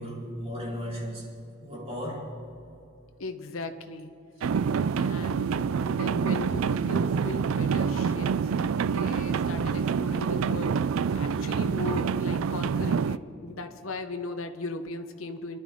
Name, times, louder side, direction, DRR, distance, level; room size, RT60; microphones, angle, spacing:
voice 1, 0.0-2.5, equal, 30° right, 3.9 m, -36 dB
voice 2, 3.2-4.1 5.0-8.3 8.9-10.9 11.1-15.6, left 3 dB, 80° left, 0.9 m, -38 dB
sound 1, 4.4-13.2, right 6 dB, 85° right, 0.4 m, -27 dB
25.5 x 11.5 x 3.6 m
head